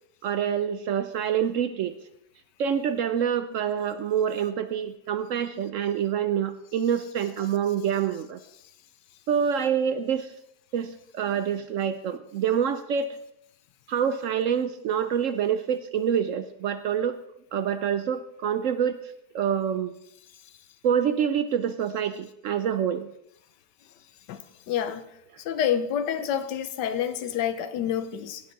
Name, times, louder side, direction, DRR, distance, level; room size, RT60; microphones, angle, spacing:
voice 1, 0.2-2.0 2.6-8.4 9.3-10.3 10.7-13.2 13.9-17.2 17.5-19.9 20.8-23.1, right 8 dB, 70° right, 11 dB, 0.7 m, -26 dB
voice 2, 24.3-25.0 25.4-28.4, left 9 dB, 85° left, 11 dB, 1.4 m, -28 dB
17.0 x 7.0 x 4.0 m, 0.78 s
omnidirectional pair, 1.8 m